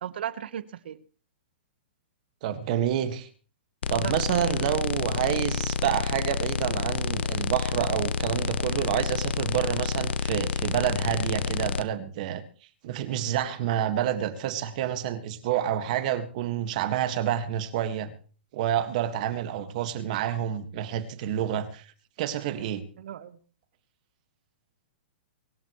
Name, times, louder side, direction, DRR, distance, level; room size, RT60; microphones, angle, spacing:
voice 1, 0.0-1.0 4.0-4.1 4.4-4.7 5.8-6.0 23.0-23.4, right 10 dB, 65° right, 15 dB, 1.1 m, -36 dB
voice 2, 2.4-3.3 3.9-12.4 12.8-18.1 18.5-21.9 22.2-22.8, right 11 dB, 45° right, 10 dB, 1.7 m, -28 dB
sound 1, 3.8-11.8, left 6 dB, 75° left, 1.1 m, -29 dB
24.5 x 13.0 x 3.1 m, 0.39 s
hypercardioid pair, 160°, 6 cm